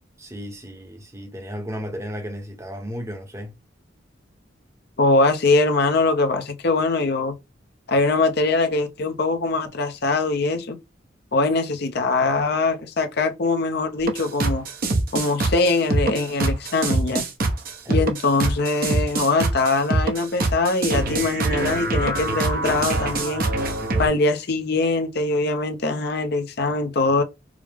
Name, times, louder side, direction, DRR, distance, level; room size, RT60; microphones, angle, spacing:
voice 1, 0.2-3.5 17.8-18.0, equal, 15° right, 0.8 m, -34 dB
voice 2, 5.0-7.3 7.9-10.8 11.3-14.6 15.1-17.2 17.9-23.5 24.0-27.2, left 3 dB, 55° left, 0.6 m, -22 dB
sound 1, 14.0-24.1, right 2 dB, 50° right, 0.7 m, -23 dB
4.8 x 2.0 x 3.3 m
head